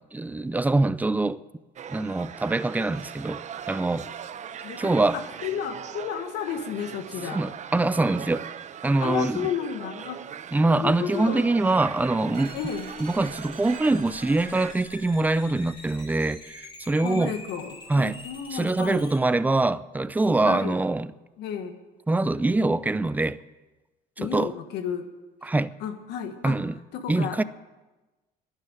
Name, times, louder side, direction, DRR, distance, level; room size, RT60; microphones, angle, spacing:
voice 1, 0.1-1.4 1.9-4.1 4.8-5.2 7.3-8.5 8.8-9.5 10.5-12.6 13.0-17.3 17.9-18.2 18.5-21.1 22.1-23.4 24.2-24.5 25.4-25.7 26.4-26.8 27.1-27.4, right 2 dB, 10° right, 0.5 m, -24 dB
sound 1, 1.8-14.7, right 8 dB, 45° right, 0.7 m, -40 dB
voice 2, 4.6-7.4 9.0-10.3 10.7-11.4 12.5-12.9 17.0-19.1 20.4-20.8 21.4-21.8 24.2-25.1 25.8-26.6 26.9-27.4, left 8 dB, 80° left, 1.6 m, -32 dB
sound 2, 12.3-19.2, left 2 dB, 30° left, 4.9 m, -45 dB
11.5 x 9.8 x 9.1 m
cardioid pair, 110°, 17 cm